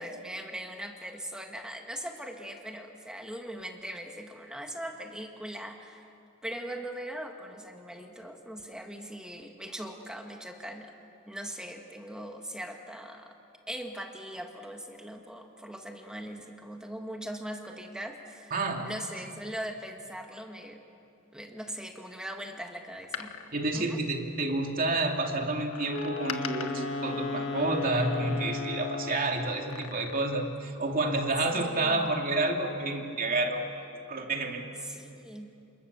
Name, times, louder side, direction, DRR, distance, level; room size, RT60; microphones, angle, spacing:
voice 1, 0.0-6.1 6.4-10.9 11.3-13.3 13.7-18.5 18.8-20.8 21.3-23.3 23.7-24.0 31.5-32.1 34.8-35.5, equal, 5° right, 3 dB, 1.6 m, -40 dB
voice 2, 18.5-18.9 23.5-33.6 34.1-34.6, right 2 dB, 40° right, 2 dB, 2.8 m, -29 dB
Door, 22.9-24.7 25.7-28.6 29.5-30.6 30.9-31.0, left 7 dB, 85° left, 1.5 m, -43 dB
Wind instrument woodwind instrument, 25.8-29.5, left 4 dB, 65° left, 2.5 m, -35 dB
29.5 x 27.0 x 7.0 m, 2.6 s
head